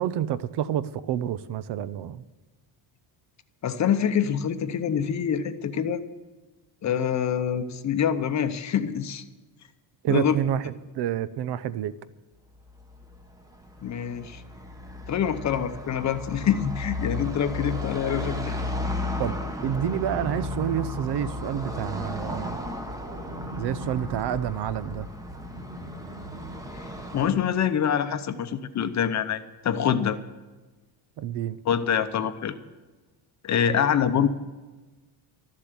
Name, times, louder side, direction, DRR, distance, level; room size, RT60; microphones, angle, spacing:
voice 1, 0.0-2.2 10.0-11.9 19.2-19.4 19.6-22.6 23.4-25.1 31.2-31.6, right 10 dB, 55° right, 16 dB, 0.7 m, -28 dB
voice 2, 3.6-6.0 6.8-9.2 10.1-10.4 13.8-14.4 15.1-18.5 27.1-30.2 31.7-32.6 33.4-34.3, left 8 dB, 35° left, 10 dB, 0.8 m, -25 dB
Car passing by / Traffic noise roadway noise, 12.6-27.3, left 2 dB, 5° right, 1.0 m, -35 dB
sound 1, 19.1-27.0, left 1 dB, 30° right, 2.9 m, -41 dB
13.5 x 7.5 x 9.7 m, 1.2 s
cardioid pair, 145°, 48 cm